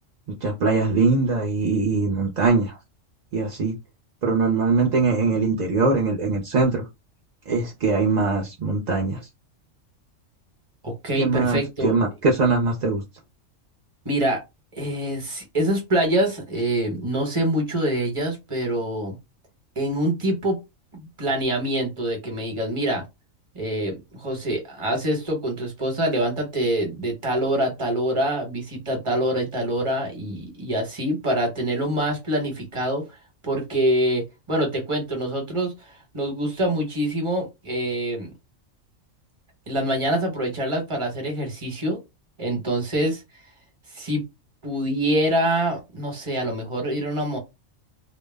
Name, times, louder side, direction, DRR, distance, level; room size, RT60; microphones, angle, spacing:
voice 1, 0.3-2.8 3.3-3.7 4.2-6.8 7.5-9.2 11.2-13.0, right 3 dB, 55° right, 0.5 m, -22 dB
voice 2, 10.8-12.0 14.0-14.4 14.8-19.2 19.8-20.6 20.9-23.0 23.5-33.0 33.4-38.3 39.7-42.0 42.4-43.2 43.9-44.2 44.6-47.4, right 1 dB, 25° right, 0.9 m, -25 dB
2.2 x 2.0 x 3.3 m
omnidirectional pair, 1.3 m